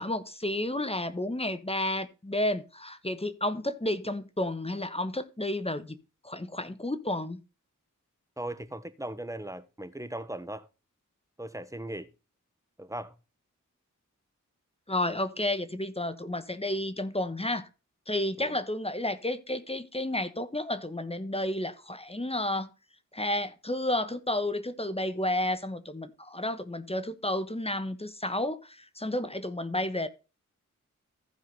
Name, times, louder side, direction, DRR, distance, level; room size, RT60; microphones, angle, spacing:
voice 1, 0.0-6.0 6.2-7.4 14.9-17.7 18.1-22.7 23.1-30.1, left 1 dB, 20° left, 1.1 m, -31 dB
voice 2, 8.4-10.7 11.4-12.1 12.8-13.1 18.4-18.6, right 1 dB, 10° right, 1.2 m, -38 dB
15.0 x 5.0 x 3.9 m
cardioid pair, 50°, 33 cm